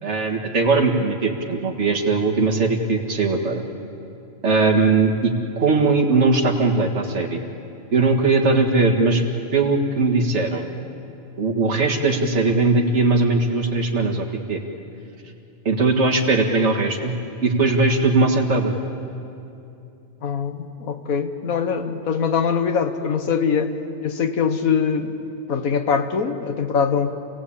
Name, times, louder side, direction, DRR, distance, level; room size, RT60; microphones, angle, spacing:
voice 1, 0.0-3.6 4.4-7.4 7.9-9.2 9.5-10.7 11.4-14.6 15.7-17.1 17.4-18.8, right 3 dB, 55° right, 1 dB, 2.2 m, -19 dB
voice 2, 20.2-23.7 24.0-25.1 25.5-27.1, left 6 dB, 85° left, 8 dB, 1.7 m, -22 dB
27.5 x 17.0 x 8.7 m, 2.7 s
omnidirectional pair, 1.4 m